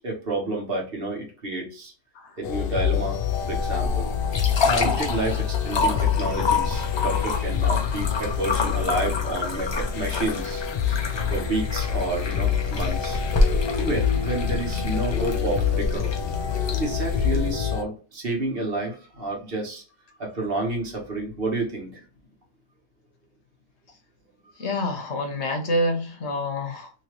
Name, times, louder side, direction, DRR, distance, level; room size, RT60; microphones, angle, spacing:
voice 1, 0.0-1.9 2.4-3.2 3.5-4.1 4.3-11.0 11.3-13.2 13.8-16.1 16.8-19.8 20.2-22.0, right 2 dB, 55° right, 1.5 m, -30 dB
sound 1, 2.4-17.8, left 9 dB, 65° left, 0.7 m, -27 dB
sound 2, 3.3-17.5, left 3 dB, 40° left, 0.4 m, -28 dB
voice 2, 24.6-26.9, left 1 dB, 85° left, 1.2 m, -27 dB
3.1 x 3.1 x 2.9 m
omnidirectional pair, 1.1 m